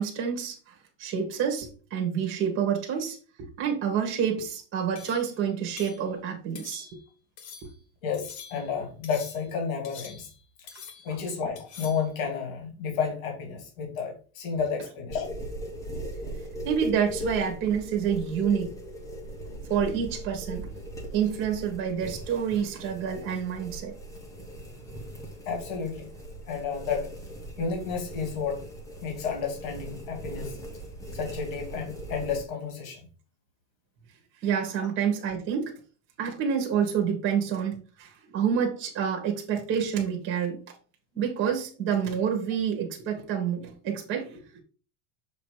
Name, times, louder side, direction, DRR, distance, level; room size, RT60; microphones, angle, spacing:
voice 1, 0.0-3.2 3.6-7.0 11.1-11.2 16.6-18.7 19.7-20.7 21.1-23.9 34.4-35.7 36.2-40.6 41.1-44.6, right 7 dB, 30° right, 1.6 m, -28 dB
sound 1, 5.0-5.3 5.8-6.0 6.6-7.1 7.4-7.8 8.1-8.7 9.0-9.5 9.8-10.4 10.7-11.2 11.6-12.1, left 7 dB, 45° left, 1.4 m, -46 dB
voice 2, 8.0-10.3 10.6-10.7 11.0-15.3 25.5-26.1 26.5-27.1 27.6-28.6 29.0-30.5 31.1-33.0, left 6 dB, 90° left, 2.5 m, -31 dB
sound 2, 15.1-32.4, equal, 10° left, 1.0 m, -39 dB
6.9 x 3.0 x 4.9 m
cardioid pair, 170°, 38 cm